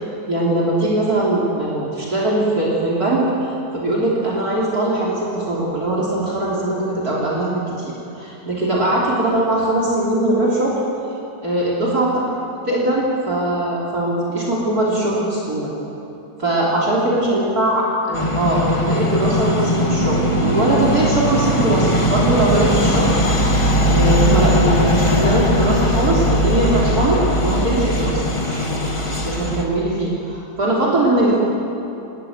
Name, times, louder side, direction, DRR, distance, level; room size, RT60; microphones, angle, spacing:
voice 1, 0.3-3.3 3.7-10.8 11.4-12.1 12.7-15.7 16.4-23.1 23.9-28.8 29.2-31.4, right 1 dB, 50° right, -4 dB, 3.7 m, -20 dB
sound 1, 18.1-29.6, equal, 15° left, 1.6 m, -19 dB
28.5 x 13.0 x 9.4 m, 2.9 s
omnidirectional pair, 2.1 m